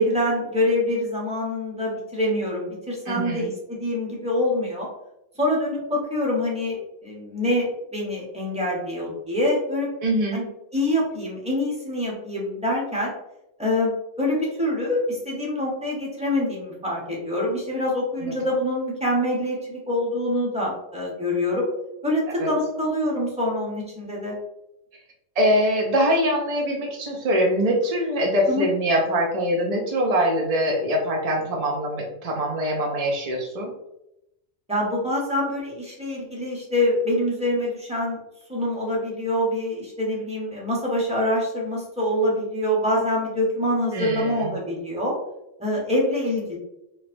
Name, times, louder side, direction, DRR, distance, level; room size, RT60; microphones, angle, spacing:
voice 1, 0.0-4.9 5.4-9.9 10.3-10.4 10.7-13.1 13.6-21.7 22.0-24.3 28.5-28.6 34.7-38.2 38.5-45.1 45.6-46.6, left 1 dB, 5° right, -4 dB, 0.7 m, -25 dB
voice 2, 3.1-3.5 10.0-10.4 18.2-18.3 22.4-22.5 25.4-33.7 43.9-44.5, equal, 60° right, 0 dB, 0.4 m, -23 dB
3.1 x 2.8 x 2.5 m, 0.85 s
omnidirectional pair, 1.4 m